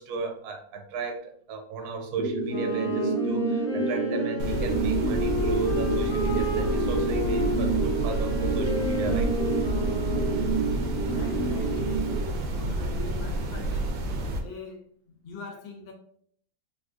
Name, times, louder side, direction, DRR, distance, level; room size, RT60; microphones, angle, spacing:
voice 1, 0.0-9.3, right 5 dB, 70° right, 4 dB, 1.0 m, -34 dB
sound 1, 2.2-12.2, right 3 dB, 15° left, 0.8 m, -29 dB
Wind instrument woodwind instrument, 2.4-10.8, left 1 dB, 60° left, 1.1 m, -32 dB
sound 2, 4.4-14.4, right 1 dB, 90° right, 1.4 m, -30 dB
voice 2, 11.1-14.0 14.4-15.9, left 4 dB, 85° left, 2 dB, 1.6 m, -42 dB
4.0 x 2.6 x 2.4 m, 0.62 s
omnidirectional pair, 2.0 m